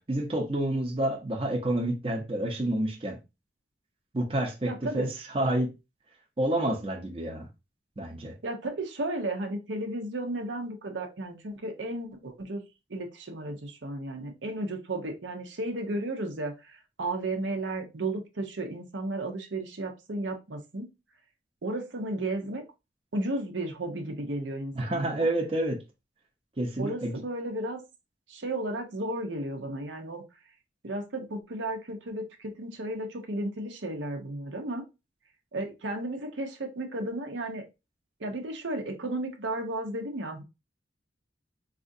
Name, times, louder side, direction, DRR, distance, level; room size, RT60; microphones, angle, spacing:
voice 1, 0.0-3.2 4.1-5.1 5.3-5.7 6.4-7.5 8.0-8.4 24.7-25.8 26.6-27.2, right 1 dB, 30° right, 0.7 m, -29 dB
voice 2, 4.7-5.1 8.4-12.6 12.9-20.9 21.6-22.6 23.1-25.3 26.8-27.8 28.3-30.2 30.8-34.8 35.5-37.6 38.2-40.4, right 2 dB, 85° right, 0.8 m, -34 dB
4.1 x 2.5 x 2.7 m
head